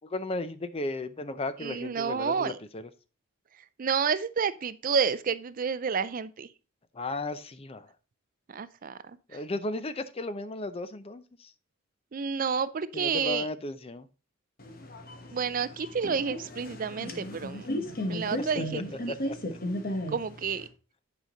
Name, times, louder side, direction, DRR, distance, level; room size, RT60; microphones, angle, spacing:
voice 1, 0.0-2.9 6.9-7.9 9.3-11.5 12.9-14.1 18.5-18.8 19.1-19.4, left 2 dB, 30° left, 0.5 m, -35 dB
voice 2, 1.6-2.6 3.8-6.5 8.5-9.0 12.1-13.5 15.3-17.7 18.1-18.8 20.1-20.7, right 6 dB, 40° right, 0.4 m, -29 dB
sound 1, 14.6-20.7, left 1 dB, 45° left, 1.2 m, -35 dB
9.1 x 5.0 x 3.9 m
head